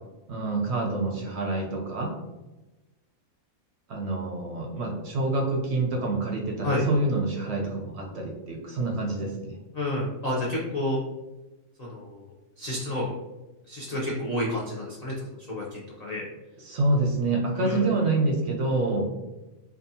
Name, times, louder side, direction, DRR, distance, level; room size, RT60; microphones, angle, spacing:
voice 1, 0.3-2.1 3.9-9.6 16.7-19.1, right 2 dB, 65° right, 0 dB, 0.7 m, -27 dB
voice 2, 9.7-11.0 11.8-13.1 13.7-16.3 17.5-17.9, left 1 dB, 70° left, -5 dB, 0.4 m, -30 dB
2.6 x 2.3 x 2.6 m, 1.1 s
omnidirectional pair, 1.5 m